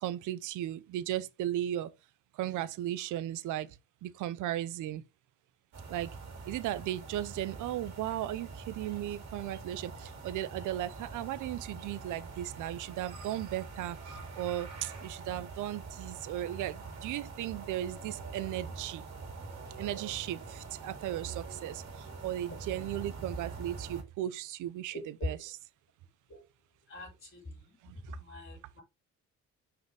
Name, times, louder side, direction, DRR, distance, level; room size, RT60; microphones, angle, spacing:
voice 1, 0.0-1.9 2.4-3.7 4.0-5.0 5.9-6.1 6.5-14.0 14.4-19.0 19.8-21.8 22.2-25.6 27.8-28.2, right 13 dB, 85° right, 0.7 m, -36 dB
sound 1, 5.7-24.0, right 4 dB, 60° right, 2.5 m, -45 dB
voice 2, 24.9-25.4 26.3-26.4 26.9-27.8 28.2-28.8, left 2 dB, 45° left, 3.1 m, -41 dB
6.1 x 4.9 x 3.4 m
cardioid pair, 90°, 30 cm